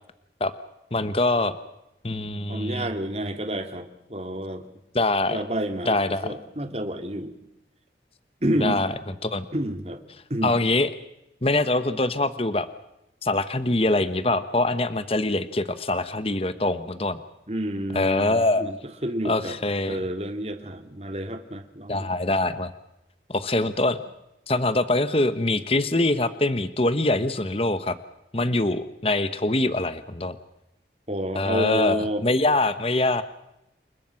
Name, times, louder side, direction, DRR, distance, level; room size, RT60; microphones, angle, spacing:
voice 1, 0.9-1.6 2.0-2.9 4.9-5.4 5.8-6.3 8.6-8.9 9.2-9.4 10.4-10.9 11.4-12.7 13.2-17.2 17.9-18.7 19.2-20.0 21.9-22.7 23.3-24.0 24.5-28.0 28.3-30.4 31.3-33.2, left 2 dB, 35° left, 12 dB, 1.2 m, -24 dB
voice 2, 2.5-4.7 5.3-7.4 8.4-8.8 9.5-10.0 10.3-10.6 17.5-18.8 19.0-19.6 19.9-22.1 31.1-32.2, right 1 dB, 35° right, 7 dB, 2.6 m, -29 dB
29.0 x 22.5 x 5.9 m, 0.85 s
head